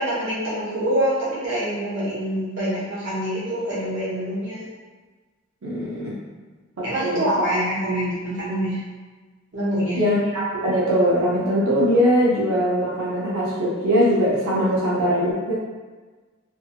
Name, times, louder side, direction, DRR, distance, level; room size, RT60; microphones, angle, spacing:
voice 1, 0.0-4.6 6.8-8.8 9.5-10.0, right 1 dB, 60° right, -9 dB, 1.0 m, -25 dB
voice 2, 5.6-6.1 6.8-7.5 9.9-15.5, equal, 80° right, -7 dB, 0.6 m, -21 dB
2.6 x 2.4 x 2.7 m, 1.4 s
head